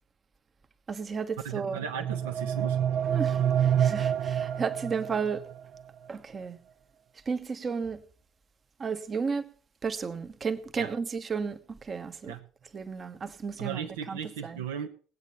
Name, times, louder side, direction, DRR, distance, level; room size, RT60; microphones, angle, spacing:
voice 1, 0.9-1.8 3.1-5.5 6.1-6.6 7.3-8.0 8.8-9.5 9.8-12.3 12.7-14.6, right 5 dB, 35° right, 1.1 m, -33 dB
voice 2, 1.4-2.8 10.8-10.9 12.3-12.4 13.6-14.9, right 8 dB, 80° right, 1.1 m, -36 dB
sound 1, 1.6-5.6, right 9 dB, 60° right, 0.5 m, -28 dB
19.5 x 8.4 x 4.3 m
hypercardioid pair, 60°, 0 cm